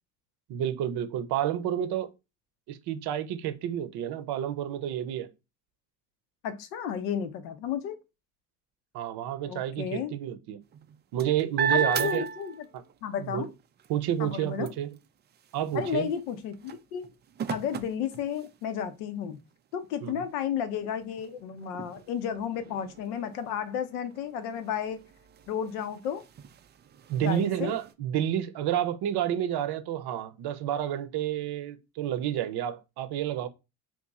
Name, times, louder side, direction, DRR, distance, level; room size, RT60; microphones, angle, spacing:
voice 1, 0.5-2.1 2.7-5.3 8.9-10.6 11.1-12.2 13.2-13.5 13.9-15.0 15.5-16.1 20.0-20.2 27.1-33.5, right 10 dB, 55° right, 0.7 m, -30 dB
voice 2, 6.4-8.0 9.5-10.1 11.7-12.7 13.0-13.5 14.2-14.7 15.7-17.1 17.5-19.4 19.7-25.0 25.5-26.2 27.2-27.8, left 8 dB, 75° left, 0.7 m, -32 dB
sound 1, 10.6-13.0 13.4-18.9 19.5-19.6 20.0-27.9, right 7 dB, 25° right, 0.3 m, -37 dB
2.9 x 2.5 x 3.6 m
hypercardioid pair, 55°, 48 cm